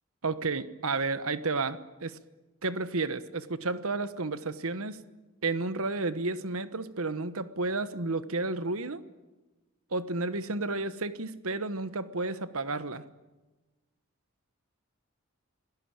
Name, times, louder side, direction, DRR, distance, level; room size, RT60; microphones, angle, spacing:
voice 1, 0.2-2.2 2.6-5.0 5.4-9.0 9.9-13.0, right 3 dB, 70° right, 13 dB, 1.3 m, -32 dB
26.5 x 18.0 x 8.9 m, 1.2 s
head